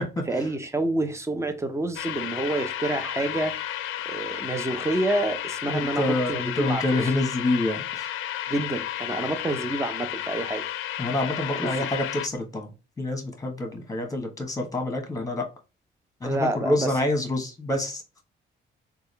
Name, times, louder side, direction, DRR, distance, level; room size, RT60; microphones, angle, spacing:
voice 1, 0.3-3.6 4.1-7.1 8.5-10.6 11.6-11.9 16.2-16.9, right 2 dB, 15° right, 0.7 m, -28 dB
sound 1, 2.0-12.3, left 12 dB, 85° left, 0.4 m, -32 dB
voice 2, 5.7-8.1 11.0-15.5 16.2-18.0, left 1 dB, 15° left, 1.2 m, -27 dB
3.6 x 2.3 x 3.3 m
cardioid pair, 90°, 20 cm